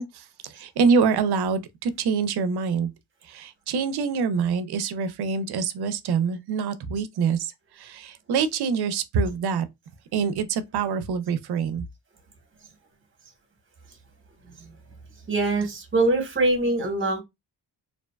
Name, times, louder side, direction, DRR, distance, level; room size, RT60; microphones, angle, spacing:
voice 1, 0.0-2.9 3.3-9.6 10.1-11.9, right 5 dB, 60° right, 0.5 m, -25 dB
voice 2, 15.3-17.2, right 2 dB, 25° right, 0.9 m, -23 dB
2.6 x 2.1 x 2.2 m
cardioid pair, 90°, 44 cm